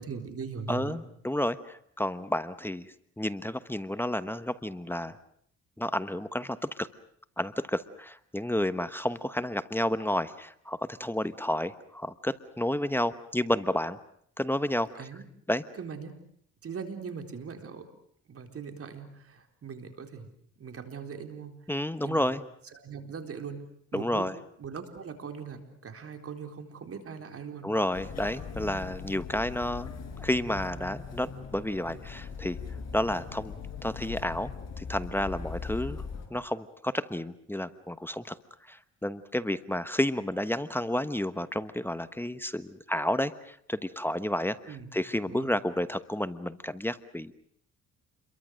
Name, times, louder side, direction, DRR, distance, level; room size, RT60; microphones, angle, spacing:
voice 1, 0.0-1.0 15.0-15.3 15.7-16.1 16.6-17.9 18.3-20.3 20.6-21.6 22.0-22.3 22.7-23.6 23.9-24.3 24.6-27.7 44.7-44.9 45.3-45.5, right 6 dB, 50° right, 6 dB, 4.1 m, -40 dB
voice 2, 0.7-2.9 3.2-5.2 5.8-6.9 7.4-14.0 14.4-14.9 15.5-15.6 21.7-22.4 23.9-24.3 27.6-29.9 30.2-32.6 32.9-34.5 34.8-36.0 36.3-38.3 38.7-44.6 44.9-47.3, left 1 dB, 5° left, 12 dB, 1.1 m, -31 dB
sound 1, 27.9-36.3, left 5 dB, 60° left, 5.5 m, -40 dB
29.0 x 23.0 x 6.5 m, 0.67 s
cardioid pair, 90°, 30 cm